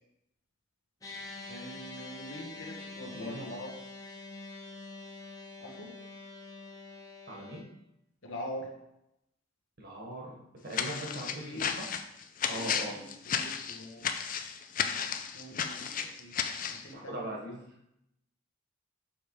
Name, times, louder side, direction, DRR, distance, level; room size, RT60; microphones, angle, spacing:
sound 1, 1.0-7.6, left 3 dB, 15° left, 1.0 m, -45 dB
voice 1, 1.5-3.7 5.6-5.9 8.2-8.7 10.8-11.6 12.5-14.0 15.3-16.3 16.7-17.3, equal, 70° left, 0 dB, 1.4 m, -44 dB
voice 2, 3.1-3.5 7.3-7.6 9.8-11.9 12.5-13.0 16.9-17.6, right 1 dB, 50° right, -1 dB, 1.6 m, -40 dB
sound 2, 10.7-16.8, left 7 dB, 45° left, 0.5 m, -33 dB
6.2 x 3.5 x 4.9 m, 0.82 s
head